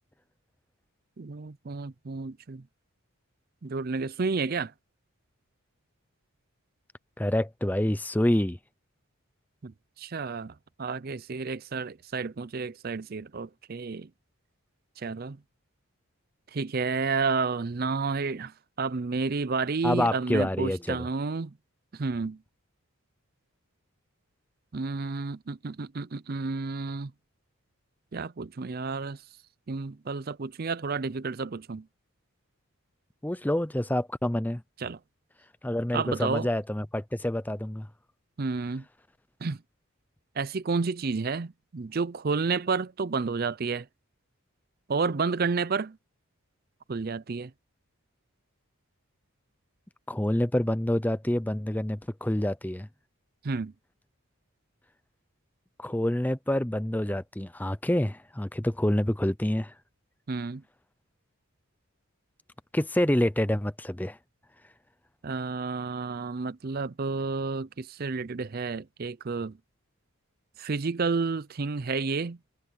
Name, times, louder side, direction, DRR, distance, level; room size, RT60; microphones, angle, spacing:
voice 1, 1.2-2.6 3.6-4.7 9.6-9.7 10.0-10.5 10.8-14.1 15.0-15.4 16.5-18.5 18.8-21.5 21.9-22.4 24.7-27.1 28.1-29.2 29.7-31.8 34.8-35.0 35.9-36.5 38.4-38.8 39.4-39.6 40.4-43.9 44.9-46.0 46.9-47.5 53.4-53.7 60.3-60.6 65.2-69.6 70.6-72.4, right 4 dB, 45° right, 0.5 m, -30 dB
voice 2, 7.2-8.6 19.8-21.1 33.2-34.6 35.6-37.9 50.1-52.9 55.8-59.7 62.7-64.2, left 1 dB, 10° left, 0.6 m, -27 dB
head